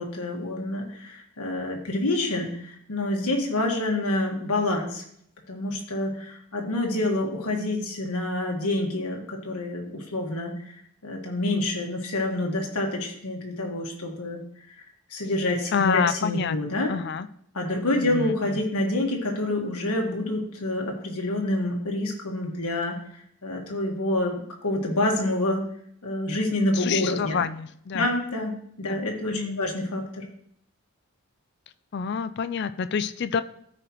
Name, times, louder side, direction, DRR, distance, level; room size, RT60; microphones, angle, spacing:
voice 1, 0.0-5.0 5.5-14.4 14.8-14.9 15.1-16.9 17.5-25.7 26.0-27.4 27.9-30.2, left 1 dB, 90° left, 1 dB, 1.6 m, -27 dB
voice 2, 15.7-17.3 18.0-18.6 26.7-28.2 28.8-29.0 29.3-29.6 31.9-33.4, left 6 dB, 50° left, 13 dB, 0.4 m, -28 dB
13.5 x 5.0 x 3.0 m, 0.67 s
head